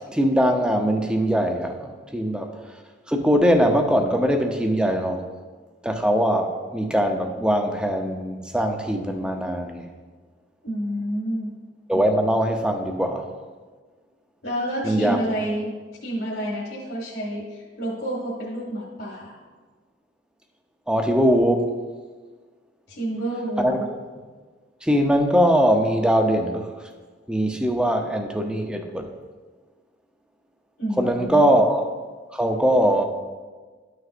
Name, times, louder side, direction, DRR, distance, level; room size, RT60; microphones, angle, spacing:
voice 1, 0.1-2.5 3.1-5.2 5.8-9.9 11.9-13.3 14.8-15.2 20.9-21.7 23.6-23.8 24.8-26.7 27.3-29.1 31.0-31.9 32.3-33.0, equal, 5° right, 4 dB, 0.6 m, -21 dB
voice 2, 10.6-11.5 14.4-15.8 16.0-19.4 22.9-23.9 30.8-31.5, right 1 dB, 70° left, -4 dB, 1.5 m, -29 dB
12.5 x 6.4 x 2.5 m, 1.4 s
head